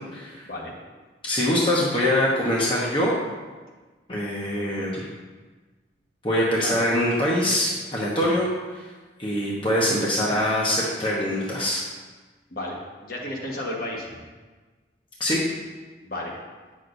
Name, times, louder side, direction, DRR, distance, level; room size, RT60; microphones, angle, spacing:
voice 1, 0.1-0.5 1.2-3.2 4.1-5.1 6.2-8.9 9.2-11.9 15.2-15.5, left 1 dB, 25° left, -5 dB, 0.9 m, -24 dB
voice 2, 13.0-14.1 16.0-16.4, left 1 dB, 50° left, -2 dB, 1.2 m, -32 dB
9.2 x 6.2 x 2.6 m, 1.3 s
head